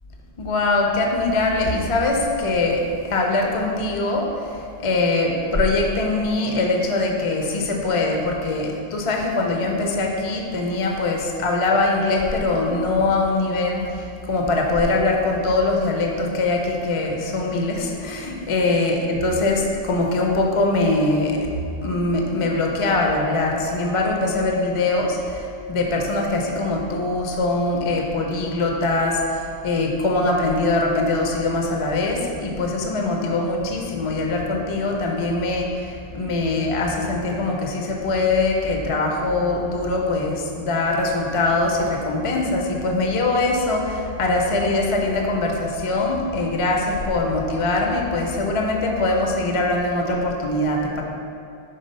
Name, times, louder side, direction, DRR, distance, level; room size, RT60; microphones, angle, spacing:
voice 1, 0.4-21.5 21.8-51.0, left 2 dB, 45° left, 1 dB, 0.5 m, -22 dB
5.4 x 3.4 x 5.3 m, 2.6 s
omnidirectional pair, 1.1 m